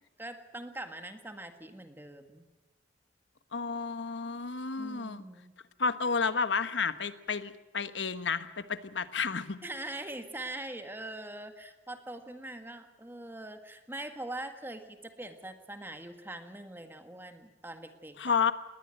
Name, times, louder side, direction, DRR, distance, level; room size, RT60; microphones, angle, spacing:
voice 1, 0.2-2.4 4.8-5.5 9.6-18.3, right 1 dB, 10° right, 7 dB, 1.8 m, -42 dB
voice 2, 3.5-5.2 5.8-9.6 18.2-18.5, left 5 dB, 85° left, 12 dB, 1.3 m, -31 dB
20.5 x 19.5 x 7.9 m, 1.1 s
head